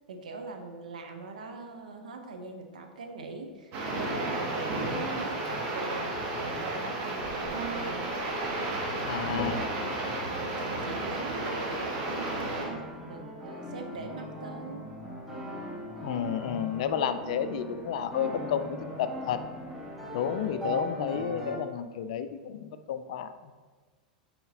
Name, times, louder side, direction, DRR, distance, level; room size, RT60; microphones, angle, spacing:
voice 1, 0.0-8.1 9.1-9.7 10.2-14.9, right 3 dB, 65° right, 5 dB, 0.8 m, -42 dB
sound 1, 3.7-12.7, right 2 dB, 40° right, 1.2 m, -33 dB
sound 2, 5.4-5.6 7.2-21.6, right 1 dB, 5° right, 1.3 m, -40 dB
voice 2, 9.0-9.6 16.0-19.4 20.1-23.5, left 8 dB, 55° left, 11 dB, 0.4 m, -31 dB
9.2 x 4.2 x 2.8 m, 1.4 s
figure-of-eight pair, 90°, 4 cm